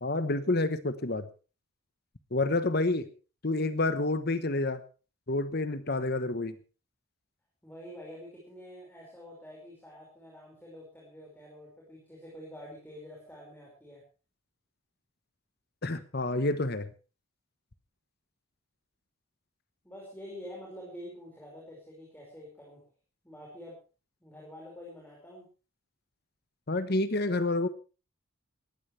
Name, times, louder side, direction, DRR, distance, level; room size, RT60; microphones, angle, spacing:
voice 1, 0.0-1.3 2.3-3.1 3.4-4.8 5.3-6.5 15.8-16.9 26.7-27.7, left 2 dB, 45° left, 12 dB, 1.1 m, -28 dB
voice 2, 7.6-14.0 19.8-22.8 23.2-23.8 24.2-25.5, equal, 10° left, -3 dB, 5.3 m, -47 dB
19.5 x 16.0 x 3.3 m, 0.34 s
head